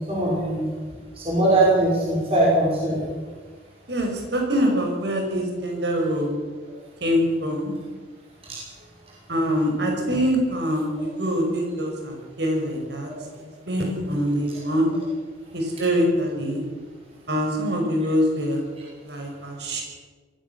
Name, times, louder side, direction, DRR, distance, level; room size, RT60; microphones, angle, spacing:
voice 1, 0.1-0.7 1.2-3.1 8.5-8.6, right 1 dB, 30° right, -5 dB, 5.6 m, -21 dB
voice 2, 3.9-6.3 7.0-7.7 9.3-13.1 13.4-14.9 15.5-16.6 17.3-18.6 19.0-19.8, equal, 65° right, 1 dB, 5.9 m, -24 dB
22.5 x 15.5 x 7.4 m, 1.4 s
head